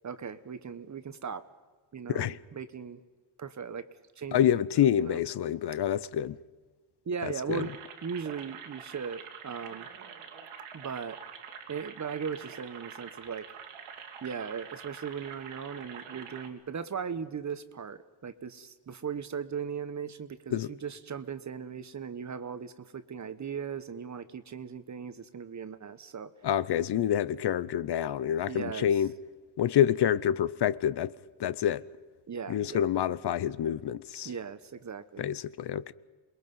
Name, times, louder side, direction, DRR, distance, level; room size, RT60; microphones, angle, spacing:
voice 1, 0.0-1.4 1.9-3.0 3.4-3.9 4.2-4.5 5.0-5.2 7.0-7.7 8.0-9.9 10.7-11.2 11.7-13.5 14.2-26.3 28.5-28.9 32.3-32.9 34.2-35.3, right 6 dB, 35° right, 1.2 m, -38 dB
voice 2, 4.3-6.4 7.5-7.7 20.5-20.7 26.4-29.1 29.6-31.1 31.4-31.9 32.5-34.3 35.2-35.9, left 10 dB, 55° left, 0.8 m, -27 dB
sound 1, 7.5-16.5, right 7 dB, 80° right, 2.7 m, -46 dB
28.0 x 21.5 x 5.6 m
cardioid pair, 115°, 49 cm